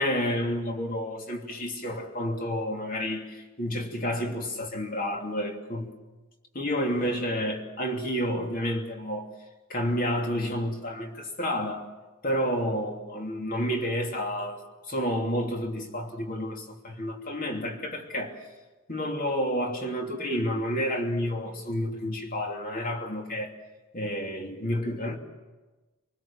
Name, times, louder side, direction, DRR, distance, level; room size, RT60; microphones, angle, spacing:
voice 1, 0.0-5.9 6.5-9.3 9.7-11.9 12.2-14.6 14.9-18.4 18.9-23.5 23.9-25.2, equal, 40° left, 2 dB, 3.1 m, -30 dB
26.5 x 20.0 x 7.3 m, 1.2 s
head